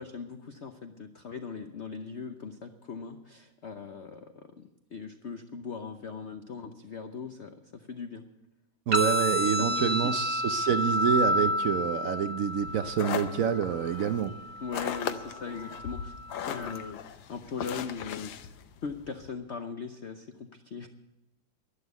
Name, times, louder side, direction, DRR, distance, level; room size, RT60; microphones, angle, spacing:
voice 1, 0.0-4.6 4.9-8.2 8.9-9.2 9.6-10.2 14.6-18.3 18.8-20.9, left 5 dB, 90° left, 7 dB, 0.6 m, -39 dB
sound 1, 8.9-16.9, equal, 35° right, 1.1 m, -31 dB
voice 2, 8.9-14.3, right 8 dB, 80° right, 10 dB, 0.7 m, -27 dB
sound 2, 12.5-19.3, left 9 dB, 70° left, 1.5 m, -38 dB
12.0 x 11.5 x 8.0 m, 0.95 s
omnidirectional pair, 2.3 m